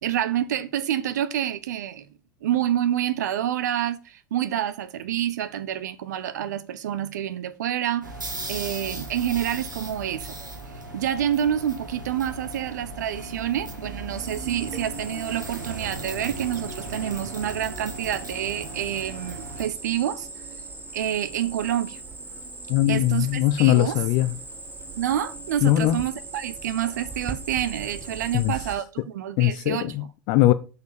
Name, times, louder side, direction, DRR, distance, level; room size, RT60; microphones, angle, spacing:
voice 1, 0.0-2.1 2.4-8.1 8.5-10.4 10.9-20.3 20.9-22.0 22.9-24.0 24.9-29.9, right 11 dB, 65° right, 0.9 m, -28 dB
sound 1, 8.0-19.6, right 2 dB, 80° right, 1.8 m, -37 dB
Cricket, 14.2-28.7, right 3 dB, 20° right, 1.4 m, -39 dB
voice 2, 22.7-24.3 25.6-26.0 28.3-28.5 29.4-30.5, left 15 dB, 45° left, 0.5 m, -20 dB
6.5 x 5.2 x 7.1 m
figure-of-eight pair, 80°, 10 cm